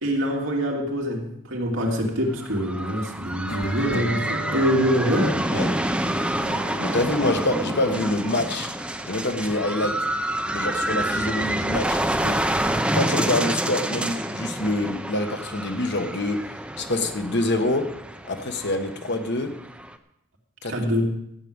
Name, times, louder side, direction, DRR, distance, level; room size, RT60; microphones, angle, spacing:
voice 1, 0.0-5.4 20.7-21.1, equal, 65° right, 0 dB, 2.7 m, -24 dB
sound 1, 2.3-19.9, right 1 dB, 5° right, 0.7 m, -28 dB
sound 2, 3.5-9.6, equal, 75° left, 2.0 m, -37 dB
voice 2, 6.8-8.7 9.1-10.0 10.5-12.4 12.9-16.4 16.8-17.9 18.2-19.5 20.6-20.9, left 2 dB, 55° left, 6 dB, 1.3 m, -26 dB
13.5 x 6.7 x 8.8 m, 0.77 s
head